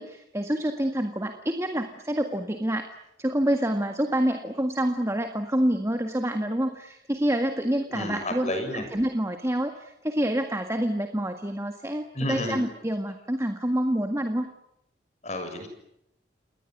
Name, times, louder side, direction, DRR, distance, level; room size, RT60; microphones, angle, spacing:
voice 1, 0.0-2.9 3.2-14.5, right 1 dB, 15° right, 6 dB, 1.8 m, -27 dB
voice 2, 7.9-8.8 12.1-12.6 15.2-15.7, left 1 dB, 40° left, 7 dB, 6.8 m, -31 dB
29.5 x 21.0 x 9.4 m, 0.80 s
head